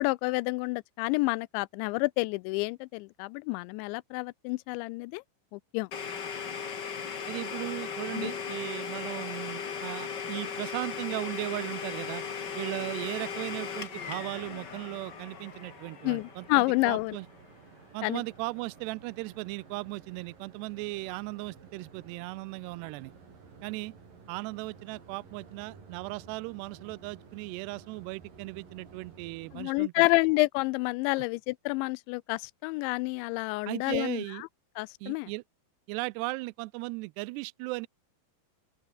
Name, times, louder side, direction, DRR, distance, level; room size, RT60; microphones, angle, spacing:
voice 1, 0.0-5.2 5.5-5.9 8.1-8.3 16.0-17.2 18.0-18.2 29.5-34.2 34.8-35.3, left 24 dB, 90° left, 2.9 m, -29 dB
Domestic sounds home sounds, 5.9-17.6, left 6 dB, 65° left, 1.0 m, -38 dB
voice 2, 7.3-12.2 12.6-17.3 17.9-23.1 23.6-23.9 24.3-29.9 31.2-31.3 33.7-34.4 35.0-35.4 35.9-37.9, right 23 dB, 85° right, 2.5 m, -37 dB
sound 1, 11.1-29.7, right 5 dB, 50° right, 6.9 m, -54 dB
open air
omnidirectional pair, 5.1 m